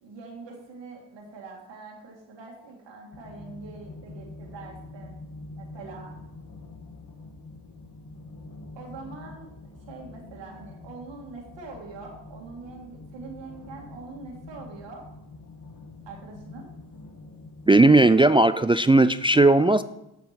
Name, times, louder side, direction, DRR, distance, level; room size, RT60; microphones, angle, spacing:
voice 1, 0.0-5.2 5.5-6.2 8.8-9.5 9.9-15.1 16.1-16.7, right 4 dB, 85° right, -1 dB, 2.0 m, -43 dB
sound 1, 3.1-17.8, left 3 dB, 50° left, 1.7 m, -45 dB
voice 2, 17.7-19.8, right 2 dB, 15° right, 14 dB, 0.3 m, -17 dB
8.3 x 7.1 x 5.8 m, 0.89 s
cardioid pair, 55°, 43 cm